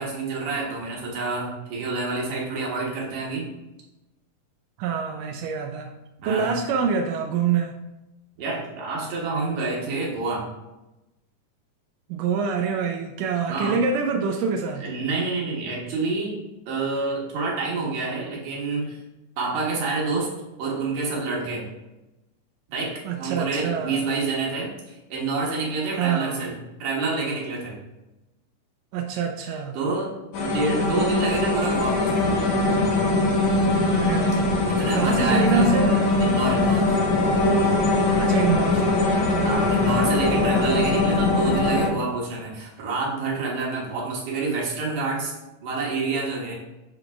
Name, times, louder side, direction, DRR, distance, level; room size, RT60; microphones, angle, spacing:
voice 1, 0.0-3.5 6.2-6.6 8.4-10.5 13.5-13.8 14.8-19.0 19.4-20.3 20.6-21.7 22.7-27.8 29.4-32.4 34.7-35.7 36.2-37.1 39.4-45.3 45.6-46.6, right 3 dB, 65° right, -4 dB, 2.7 m, -28 dB
voice 2, 4.8-5.9 6.3-7.7 12.1-14.9 23.1-24.1 25.9-26.4 28.9-29.8 33.9-36.1 38.2-39.0, right 6 dB, 90° right, 3 dB, 2.2 m, -26 dB
sound 1, 30.3-41.9, left 2 dB, 70° left, 2.0 m, -21 dB
7.9 x 3.8 x 3.5 m, 0.99 s
omnidirectional pair, 3.7 m